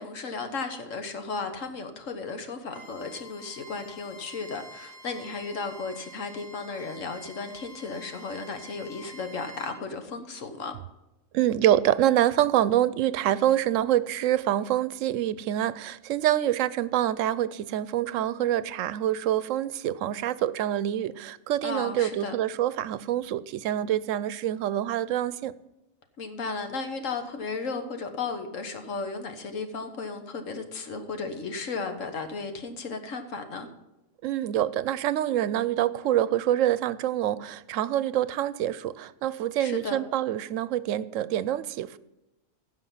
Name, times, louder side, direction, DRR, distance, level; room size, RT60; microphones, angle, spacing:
voice 1, 0.0-10.8 21.6-22.4 26.2-33.7 39.6-40.0, left 4 dB, 85° left, 1.6 m, -35 dB
Bowed string instrument, 2.7-9.8, equal, 25° left, 2.8 m, -48 dB
voice 2, 11.3-25.5 34.2-42.0, right 12 dB, 85° right, 0.9 m, -26 dB
15.5 x 5.8 x 5.6 m
omnidirectional pair, 1.3 m